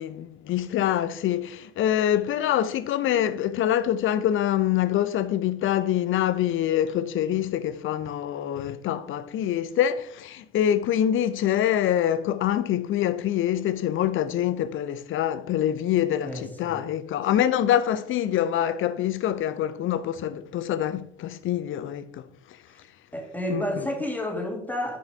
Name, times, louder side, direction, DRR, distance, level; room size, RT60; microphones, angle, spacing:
voice 1, 0.0-22.2 23.5-23.9, left 11 dB, 35° left, 0.9 m, -25 dB
voice 2, 16.2-16.8 23.1-25.0, left 1 dB, 5° left, 2.6 m, -30 dB
10.5 x 6.1 x 4.8 m
figure-of-eight pair, 70°, 35 cm